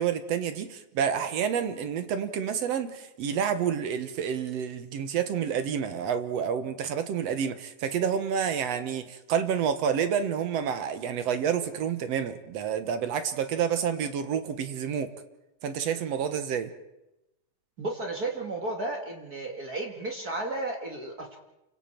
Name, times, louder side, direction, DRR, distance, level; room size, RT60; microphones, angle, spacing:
voice 1, 0.0-15.1 15.6-16.7, right 8 dB, 65° right, 2.1 m, -29 dB
voice 2, 17.8-21.4, right 2 dB, 35° right, 2.2 m, -33 dB
29.5 x 24.5 x 4.5 m
omnidirectional pair, 3.4 m